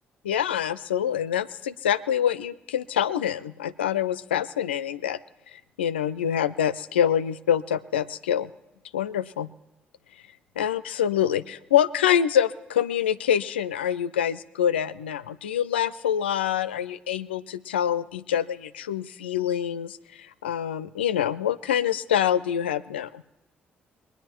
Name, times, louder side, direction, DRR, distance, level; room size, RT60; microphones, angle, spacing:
voice 1, 0.2-5.2 5.5-8.5 8.9-9.5 10.6-23.2, left 9 dB, 85° left, 14 dB, 0.4 m, -26 dB
22.0 x 10.0 x 4.4 m, 1.0 s
hypercardioid pair, 45°, 6 cm